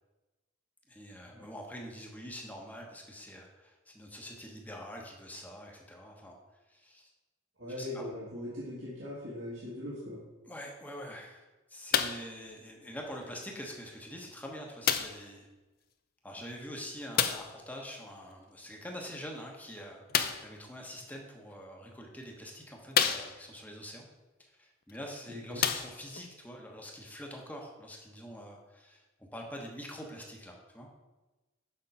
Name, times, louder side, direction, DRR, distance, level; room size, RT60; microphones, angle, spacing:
voice 1, 0.9-6.4 6.7-7.1 7.8-8.1 10.5-15.5 16.2-20.0 20.4-24.0 24.4-29.0 29.3-30.9, equal, 10° left, 0 dB, 1.1 m, -45 dB
voice 2, 7.6-10.2 25.3-25.6, left 1 dB, 70° right, -8 dB, 1.8 m, -40 dB
sound 1, 11.9-12.3 13.2-13.3 14.8-15.3 17.1-17.6 20.1-20.5 21.5-21.6 22.2-22.3 22.9-23.6 24.9-25.0 25.5-26.3 27.1-27.2, left 8 dB, 50° left, 0.5 m, -29 dB
6.7 x 5.3 x 5.5 m, 1.1 s
head